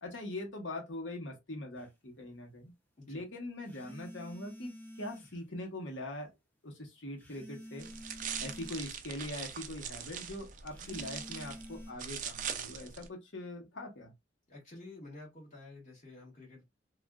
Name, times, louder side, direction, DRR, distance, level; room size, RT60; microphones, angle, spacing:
voice 1, 0.0-2.7 3.1-6.3 6.6-7.9 8.4-14.1, left 1 dB, 75° left, 1.1 m, -42 dB
sound 1, 1.7-1.9 3.7-5.4 7.2-8.9 10.7-11.9, equal, 10° left, 0.7 m, -49 dB
sound 2, 7.8-13.1, right 8 dB, 45° right, 0.4 m, -42 dB
voice 2, 14.5-16.6, left 2 dB, 40° left, 2.0 m, -50 dB
3.3 x 2.4 x 2.3 m
head